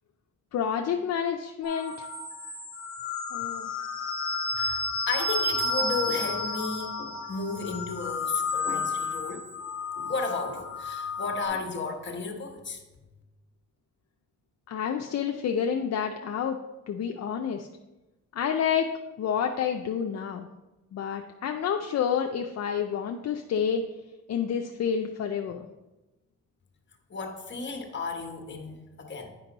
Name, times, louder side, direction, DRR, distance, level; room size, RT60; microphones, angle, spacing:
voice 1, 0.5-2.1 3.3-3.7 14.7-16.6 16.9-17.7 18.4-18.9 19.2-20.5 20.9-23.8 24.3-25.6, left 7 dB, 60° left, 4 dB, 0.5 m, -29 dB
sound 1, 1.6-11.5, left 3 dB, 10° right, 2.4 m, -32 dB
voice 2, 4.6-9.5 10.0-12.8 27.1-29.3, left 4 dB, 40° left, 3 dB, 1.2 m, -33 dB
9.0 x 5.3 x 3.9 m, 1.1 s
wide cardioid pair, 125°, 30 cm